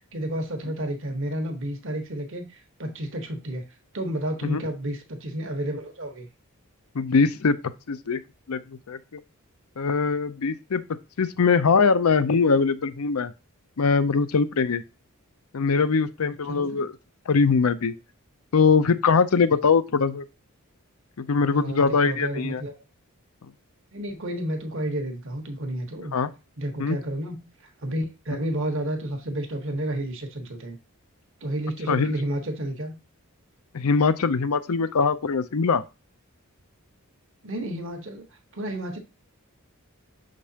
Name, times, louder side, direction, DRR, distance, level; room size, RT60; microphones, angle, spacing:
voice 1, 0.1-3.6 3.9-6.3 16.5-16.8 21.5-22.8 23.9-26.1 26.6-27.4 27.8-30.8 31.4-32.9 37.4-38.2 38.5-39.0, right 1 dB, 60° right, 1.2 m, -31 dB
voice 2, 6.9-7.6 7.9-8.2 8.5-9.2 9.8-10.8 11.2-13.3 13.8-14.8 15.5-17.0 17.3-17.9 18.5-20.3 21.2-22.6 26.1-26.3 26.8-27.0 28.3-28.4 31.9-32.2 33.7-35.8, left 5 dB, 80° left, 0.6 m, -22 dB
6.9 x 5.3 x 2.8 m
head